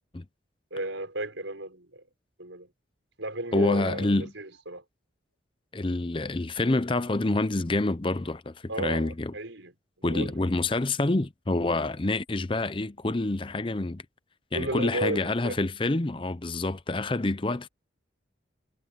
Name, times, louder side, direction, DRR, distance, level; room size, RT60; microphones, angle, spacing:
voice 1, 0.7-2.0 2.4-2.7 3.2-4.8 8.7-9.7 10.0-10.4 14.5-15.6, right 1 dB, 85° right, 5.5 m, -34 dB
voice 2, 3.5-4.3 5.7-9.3 10.0-14.0 14.5-17.7, left 2 dB, 25° left, 0.6 m, -27 dB
head